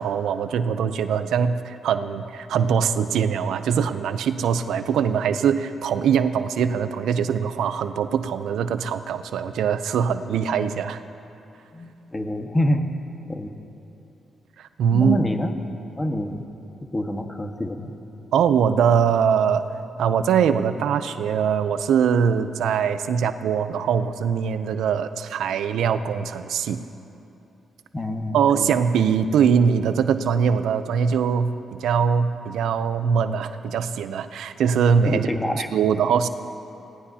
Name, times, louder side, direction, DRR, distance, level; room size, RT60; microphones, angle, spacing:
voice 1, 0.0-11.0 14.8-15.2 18.3-19.6 20.0-26.8 28.3-35.3 35.7-36.3, right 7 dB, 85° right, 11 dB, 0.6 m, -22 dB
voice 2, 11.7-12.9 13.3-13.5 14.9-15.6 16.0-16.5 16.9-17.9 27.9-28.7 35.0-35.7, left 1 dB, 20° left, 4 dB, 1.5 m, -26 dB
24.0 x 17.5 x 2.8 m, 2.8 s
cardioid pair, 75°, 0 cm